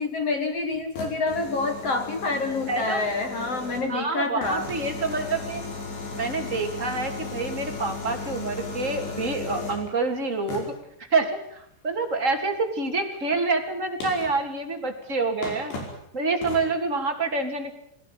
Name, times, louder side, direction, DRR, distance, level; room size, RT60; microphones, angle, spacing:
voice 1, 0.0-4.7, left 3 dB, 50° left, 7 dB, 2.0 m, -27 dB
sound 1, 0.7-4.0 4.4-9.9 10.5-10.8 13.2-13.3 14.0-14.4 15.0-15.1 15.4-16.0 16.4-16.7, left 3 dB, 90° left, 7.3 m, -35 dB
voice 2, 2.7-3.0 3.9-5.6 6.1-10.7 11.1-15.8 16.1-17.7, right 3 dB, 20° right, 3 dB, 2.6 m, -27 dB
21.5 x 18.0 x 9.3 m, 0.72 s
omnidirectional pair, 4.8 m